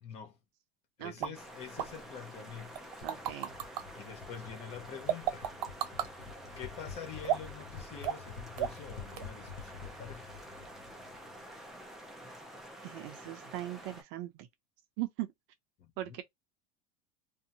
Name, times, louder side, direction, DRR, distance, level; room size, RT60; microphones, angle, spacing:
voice 1, 0.0-0.4 1.0-2.9 3.9-5.5 6.0-6.3 6.6-10.4 15.8-16.1, left 7 dB, 30° left, 0.7 m, -46 dB
sound 1, 1.2-1.3 1.8-1.9 2.8-3.8 5.1-6.1 7.2-7.6 8.0-8.3 8.6-8.9 9.2-9.3, right 11 dB, 85° right, 1.0 m, -32 dB
sound 2, 1.3-14.0, right 1 dB, ahead, 0.4 m, -49 dB
sound 3, 3.0-11.7, left 6 dB, 75° left, 0.7 m, -49 dB
voice 2, 3.0-3.5 12.8-14.5 15.0-15.3 16.0-16.2, right 15 dB, 45° right, 0.6 m, -39 dB
2.7 x 2.2 x 2.7 m
supercardioid pair, 175°, 20 cm